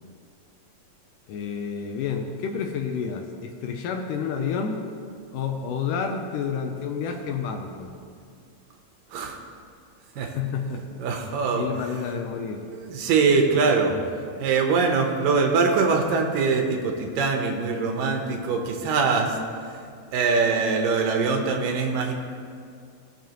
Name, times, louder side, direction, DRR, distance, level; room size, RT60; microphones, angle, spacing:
voice 1, 1.3-4.8 5.3-7.9 10.2-11.0 11.5-12.6, left 6 dB, 80° left, 3 dB, 2.1 m, -30 dB
voice 2, 11.0-11.7 12.7-14.0 14.4-19.4 20.1-22.1, right 4 dB, 75° right, 2 dB, 2.7 m, -23 dB
18.5 x 7.1 x 3.0 m, 2.3 s
omnidirectional pair, 4.0 m